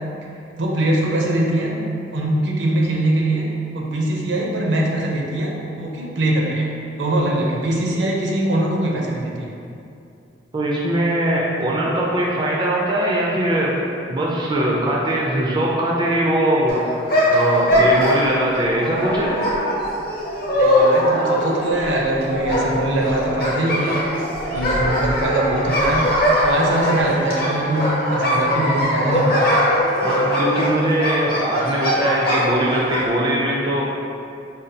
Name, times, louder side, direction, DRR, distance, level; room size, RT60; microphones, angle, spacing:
voice 1, 0.6-1.7 2.1-3.5 3.7-9.5 20.5-24.0 24.5-26.1 26.4-29.5, right 1 dB, 75° right, -2 dB, 0.6 m, -22 dB
voice 2, 10.5-13.7 14.1-16.8 17.3-19.3 30.0-34.0, right 1 dB, 25° right, -4 dB, 0.3 m, -21 dB
sound 1, 16.7-33.1, equal, 55° left, 0.8 m, -21 dB
5.0 x 2.3 x 2.7 m, 2.5 s
head